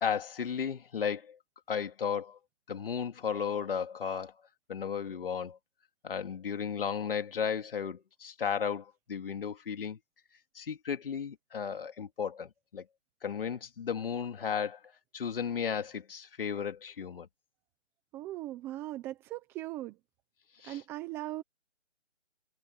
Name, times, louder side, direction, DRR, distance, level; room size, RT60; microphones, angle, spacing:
voice 1, 0.0-1.4 1.7-2.4 2.7-4.3 4.7-5.6 6.0-10.0 10.5-12.8 13.2-14.8 15.1-17.3 20.6-20.8, left 7 dB, 50° left, 2.8 m, -34 dB
voice 2, 18.1-19.9 20.6-21.4, right 15 dB, 5° right, 0.9 m, -39 dB
hypercardioid pair, 160°, 35 cm